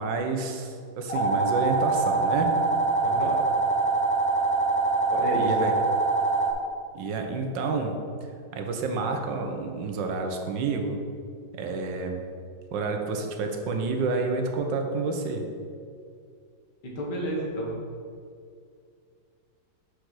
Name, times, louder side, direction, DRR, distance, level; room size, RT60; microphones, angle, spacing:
voice 1, 0.0-2.5 5.4-5.7 6.9-8.0 8.5-11.0 11.5-12.2 12.7-15.4, right 4 dB, 90° right, 4 dB, 1.5 m, -29 dB
sound 1, 1.1-6.5, right 3 dB, 40° left, 0.5 m, -24 dB
voice 2, 3.0-3.4 5.1-5.7 16.8-17.7, equal, 70° left, -3 dB, 2.2 m, -31 dB
6.0 x 5.0 x 6.2 m, 2.3 s
omnidirectional pair, 2.0 m